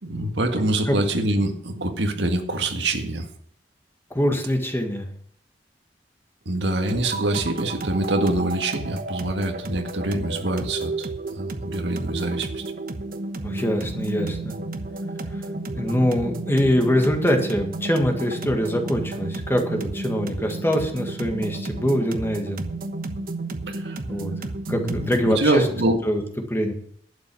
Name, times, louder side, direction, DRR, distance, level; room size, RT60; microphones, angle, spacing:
voice 1, 0.0-3.3 6.5-12.6 23.7-24.2 24.7-26.0, right 1 dB, 90° right, 4 dB, 1.8 m, -25 dB
voice 2, 4.1-5.0 13.4-14.6 15.7-22.7 24.1-24.3 24.7-25.6 26.0-26.2 26.5-26.7, equal, 15° left, 4 dB, 1.7 m, -23 dB
sound 1, 6.9-25.3, right 2 dB, 55° right, 1.1 m, -32 dB
11.5 x 8.8 x 6.2 m, 0.64 s
head